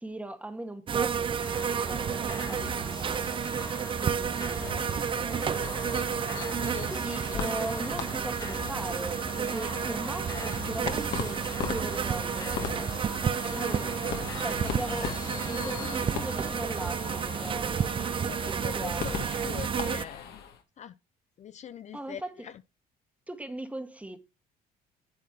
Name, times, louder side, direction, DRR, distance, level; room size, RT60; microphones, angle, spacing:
voice 1, 0.0-3.3 4.0-5.4 6.9-12.7 13.4-14.0 14.4-17.8 18.5-19.2 21.9-22.3 23.3-24.2, right 1 dB, 10° right, 1.4 m, -39 dB
sound 1, 0.9-20.0, right 7 dB, 30° right, 0.4 m, -31 dB
sound 2, 1.4-18.2, left 4 dB, 20° left, 0.8 m, -43 dB
voice 2, 3.9-5.5 13.3-14.3 14.7-15.2 18.3-20.4 20.8-21.0 21.4-22.6, left 9 dB, 45° left, 0.5 m, -44 dB
sound 3, 4.6-20.6, left 7 dB, 75° left, 2.0 m, -40 dB
10.5 x 8.4 x 2.8 m
cardioid pair, 110°, 17 cm